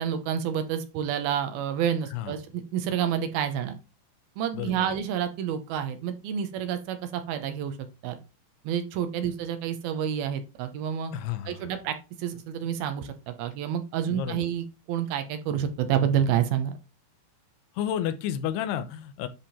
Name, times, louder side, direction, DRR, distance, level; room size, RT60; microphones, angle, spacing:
voice 1, 0.0-3.8 4.4-7.8 8.0-8.2 8.6-11.1 11.5-16.8, right 9 dB, 75° right, 8 dB, 2.7 m, -29 dB
voice 2, 4.5-4.9 11.1-11.7 14.1-14.5 17.8-19.3, left 10 dB, 90° left, 10 dB, 2.8 m, -31 dB
10.5 x 3.6 x 4.2 m, 0.28 s
omnidirectional pair, 4.5 m